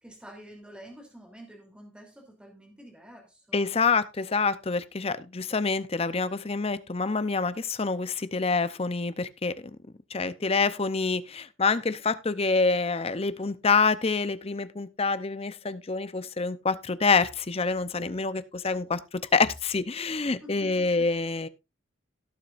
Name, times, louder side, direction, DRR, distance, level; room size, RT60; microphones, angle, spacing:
voice 1, 0.0-3.7 20.4-21.1, equal, 5° right, 3.0 m, -48 dB
voice 2, 3.5-9.7 10.1-21.5, left 4 dB, 30° left, 0.6 m, -27 dB
17.5 x 7.3 x 2.5 m
head